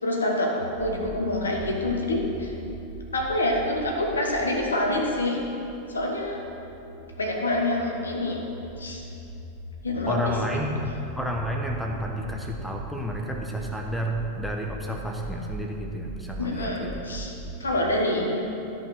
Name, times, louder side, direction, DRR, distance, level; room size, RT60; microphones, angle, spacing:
voice 1, 0.0-2.5 3.1-5.4 5.9-6.4 7.2-8.4 8.8-9.0 9.8-10.4 10.8-10.9 16.4-17.3 17.6-18.4, left 1 dB, 75° left, 0 dB, 1.5 m, -26 dB
sound 1, 0.6-17.6, right 2 dB, 80° right, 1.1 m, -41 dB
voice 2, 10.1-10.7 11.2-17.0, equal, ahead, 0 dB, 1.1 m, -31 dB
13.0 x 5.4 x 6.2 m, 2.8 s
figure-of-eight pair, 90°, 0 cm